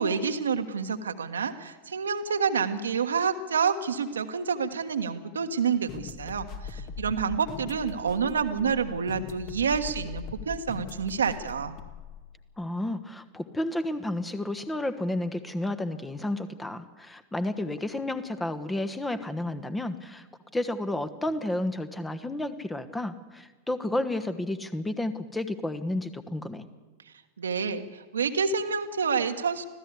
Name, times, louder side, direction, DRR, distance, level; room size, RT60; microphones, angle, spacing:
voice 1, 0.0-11.8 27.4-29.7, right 6 dB, 70° right, 7 dB, 1.4 m, -28 dB
sound 1, 5.9-12.2, left 6 dB, 40° left, 2.0 m, -41 dB
voice 2, 12.6-20.3 20.5-26.7, left 1 dB, 10° left, 12 dB, 1.3 m, -31 dB
25.0 x 16.0 x 8.4 m, 1.3 s
figure-of-eight pair, 90°, 0 cm